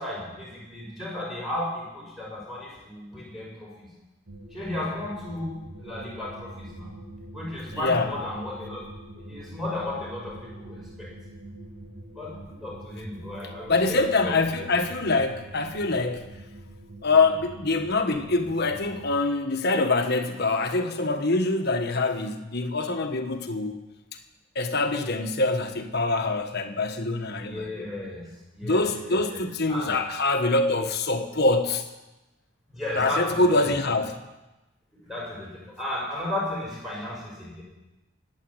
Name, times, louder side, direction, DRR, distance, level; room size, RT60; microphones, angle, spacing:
voice 1, 0.0-3.9 4.5-5.5 5.8-6.9 7.3-8.8 9.2-11.1 12.1-14.6 27.3-28.2 28.5-29.4 29.7-30.0 32.7-33.7 35.0-37.6, left 1 dB, ahead, -4 dB, 5.9 m, -34 dB
sound 1, 4.3-19.2, right 1 dB, 50° right, 1.3 m, -44 dB
voice 2, 7.7-8.1 13.7-16.3 17.0-23.7 24.5-27.9 28.6-31.8 32.9-34.2, left 3 dB, 45° left, 6 dB, 1.4 m, -24 dB
19.5 x 8.6 x 8.0 m, 1.0 s
head